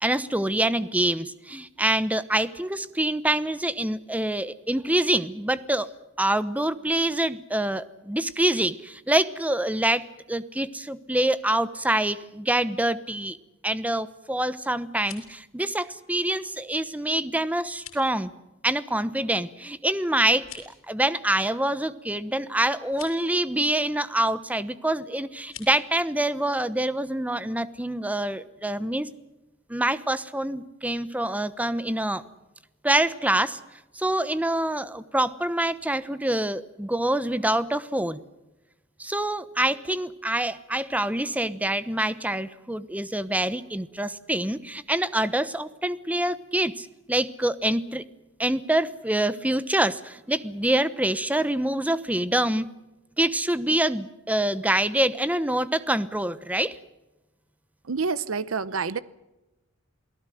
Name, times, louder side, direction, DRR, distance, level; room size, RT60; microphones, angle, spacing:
voice 1, 0.0-5.9 6.2-13.4 13.6-18.3 18.6-29.1 29.7-32.2 32.8-33.6 33.9-38.2 39.0-48.0 48.4-52.7 53.2-56.8, right 1 dB, 5° right, 14 dB, 1.0 m, -26 dB
sound 1, 14.8-15.4 17.7-18.1 20.3-20.8 22.8-23.2 25.4-25.7, left 9 dB, 75° left, 6.7 m, -45 dB
voice 2, 57.9-59.0, right 5 dB, 90° right, 17 dB, 0.8 m, -28 dB
28.5 x 18.5 x 7.8 m, 1.0 s
head